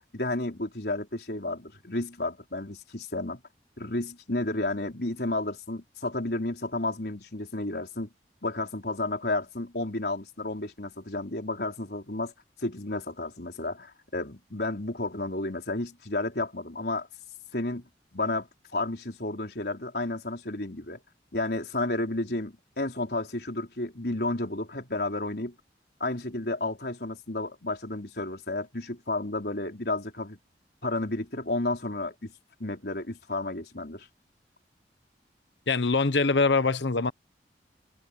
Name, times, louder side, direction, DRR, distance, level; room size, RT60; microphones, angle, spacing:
voice 1, 0.1-3.4 3.8-8.1 8.4-12.3 12.6-17.1 17.5-17.8 18.1-21.0 21.3-25.5 26.0-30.4 30.8-32.3 32.6-34.1, left 2 dB, 65° left, 4.2 m, -32 dB
voice 2, 35.7-37.1, left 4 dB, 85° left, 1.1 m, -23 dB
head